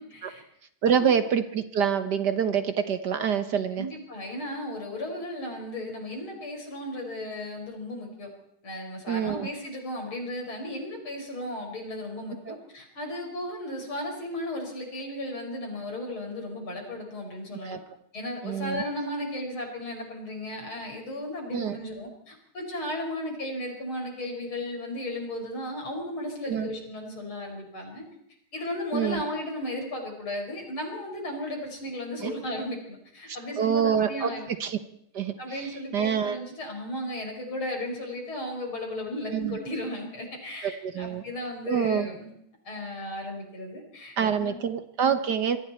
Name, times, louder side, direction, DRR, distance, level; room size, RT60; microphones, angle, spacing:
voice 1, 0.1-0.4 0.8-1.1 3.7-8.3 8.6-17.8 18.1-28.0 28.5-34.5 35.4-42.3 42.6-44.6, left 1 dB, 75° left, 2 dB, 6.5 m, -35 dB
voice 2, 0.8-3.9 9.1-9.5 12.5-12.6 17.6-17.8 18.4-18.8 21.5-21.7 26.4-26.7 28.9-29.2 32.2-32.3 33.3-34.3 34.6-34.8 35.1-36.4 39.3-39.6 40.6-41.2 41.7-42.1 44.2-45.6, right 7 dB, 55° right, 10 dB, 1.6 m, -26 dB
26.5 x 22.5 x 4.4 m, 0.75 s
omnidirectional pair, 2.3 m